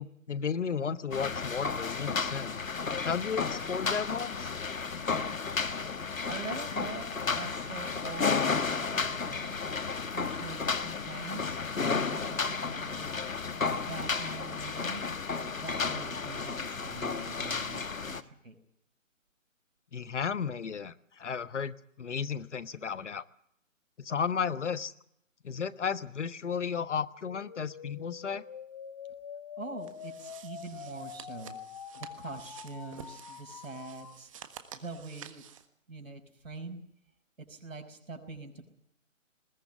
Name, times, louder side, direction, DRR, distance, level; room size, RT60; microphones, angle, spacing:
voice 1, 0.0-2.7 3.0-4.6 19.9-23.2 24.0-24.9 25.4-28.4, left 6 dB, 60° left, 15 dB, 1.3 m, -34 dB
sound 1, 1.1-18.2, left 5 dB, 85° left, 1.5 m, -33 dB
voice 2, 6.3-7.1 7.3-9.6 10.1-13.2 13.7-15.0 15.4-18.6 29.6-31.6 31.9-34.3 34.7-35.4 35.9-36.8 37.5-38.7, right 3 dB, 80° right, 5 dB, 5.4 m, -43 dB
sound 2, 27.2-34.2, left 7 dB, 25° left, 0.8 m, -46 dB
sound 3, 29.8-35.7, right 9 dB, 25° right, 1.4 m, -50 dB
20.5 x 17.0 x 9.1 m, 0.72 s
figure-of-eight pair, 150°, 40 cm